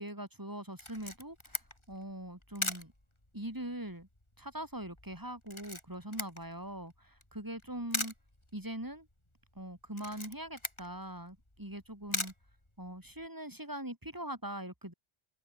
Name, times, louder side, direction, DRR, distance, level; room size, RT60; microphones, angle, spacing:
voice 1, 0.0-1.6 1.9-2.9 3.3-4.1 4.4-8.1 8.5-9.1 9.6-12.3 12.8-14.9, right 1 dB, 20° right, 4.0 m, -42 dB
Camera, 0.8-13.3, left 1 dB, 25° left, 4.1 m, -43 dB
omnidirectional pair, 1.1 m